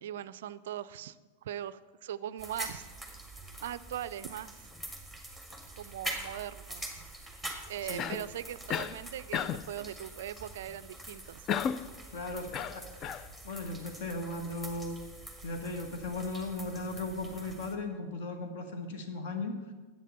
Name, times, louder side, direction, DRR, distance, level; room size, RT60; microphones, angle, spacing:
voice 1, 0.0-1.2 1.4-2.9 3.6-4.7 5.8-6.8 7.7-11.5, right 11 dB, 55° right, 17 dB, 0.4 m, -40 dB
sound 1, 2.4-17.8, right 1 dB, 10° left, 1.8 m, -45 dB
Cough, 8.0-8.3 8.7-9.0 9.3-9.7 11.5-11.9 12.5-13.3, left 8 dB, 30° left, 0.3 m, -33 dB
voice 2, 12.1-15.0 15.4-19.6, left 2 dB, 50° left, 6 dB, 1.5 m, -37 dB
10.5 x 8.2 x 6.6 m, 1.4 s
figure-of-eight pair, 90°, 0 cm